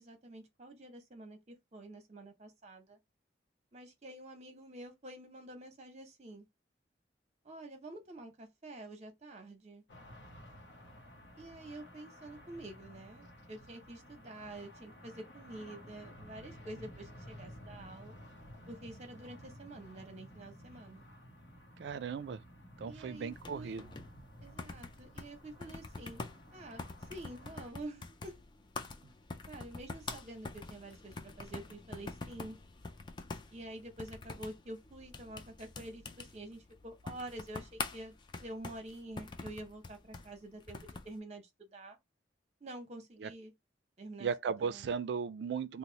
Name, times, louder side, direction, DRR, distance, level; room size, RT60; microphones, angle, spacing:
voice 1, 0.0-3.0 3.7-6.5 7.4-9.8 11.4-18.2 18.7-21.1 22.9-23.9 24.4-26.2 26.5-28.3 29.5-32.6 33.5-38.1 38.4-42.0 42.6-43.5 44.0-44.9, right 1 dB, 40° right, 0.8 m, -48 dB
sound 1, 9.9-27.7, equal, 75° left, 0.7 m, -54 dB
voice 2, 21.8-22.4 22.8-23.9 43.2-43.3 44.2-45.8, right 6 dB, 70° right, 0.3 m, -36 dB
sound 2, 23.3-41.2, left 3 dB, 25° left, 0.3 m, -46 dB
2.9 x 2.0 x 3.8 m
head